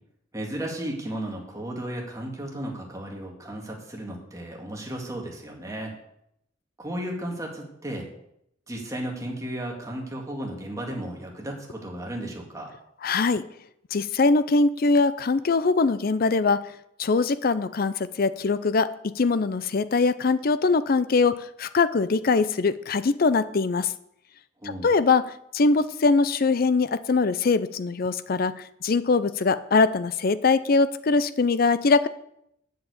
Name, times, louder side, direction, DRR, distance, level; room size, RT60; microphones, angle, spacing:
voice 1, 0.3-5.9 6.8-8.1 8.7-12.7 24.6-24.9, right 1 dB, 15° right, -1 dB, 2.1 m, -34 dB
voice 2, 13.0-13.5 13.9-16.6 17.0-23.9 24.8-25.2 25.5-32.1, left 4 dB, 45° left, 14 dB, 0.5 m, -22 dB
7.7 x 7.0 x 8.2 m, 0.77 s
head